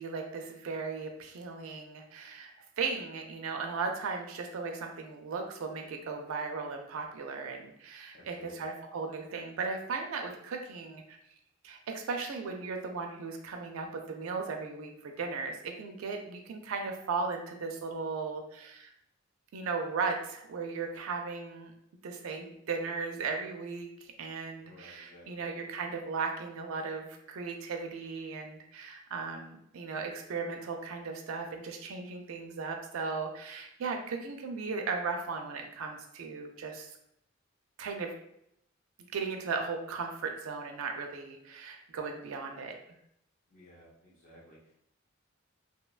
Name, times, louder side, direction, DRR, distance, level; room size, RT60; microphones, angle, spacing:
voice 1, 0.0-2.5 2.8-11.2 11.6-18.9 19.5-21.7 22.0-36.9 37.8-38.1 39.1-42.7, right 4 dB, 85° right, 3 dB, 0.4 m, -37 dB
voice 2, 8.1-8.7 24.6-25.4 43.5-44.7, equal, 45° left, -6 dB, 0.5 m, -55 dB
2.7 x 2.2 x 2.3 m, 0.75 s
head